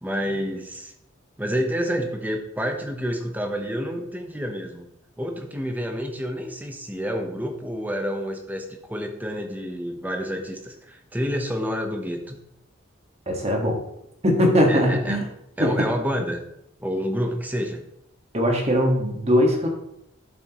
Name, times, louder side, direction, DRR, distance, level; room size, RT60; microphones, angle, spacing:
voice 1, 0.0-0.9 1.4-4.9 5.2-12.4 14.7-15.2 15.6-16.4 16.8-17.9, equal, 10° right, 4 dB, 0.9 m, -29 dB
voice 2, 13.3-13.8 14.2-15.3 15.6-15.9 18.3-19.7, equal, 30° right, 1 dB, 1.6 m, -20 dB
11.5 x 7.3 x 3.0 m, 0.79 s
head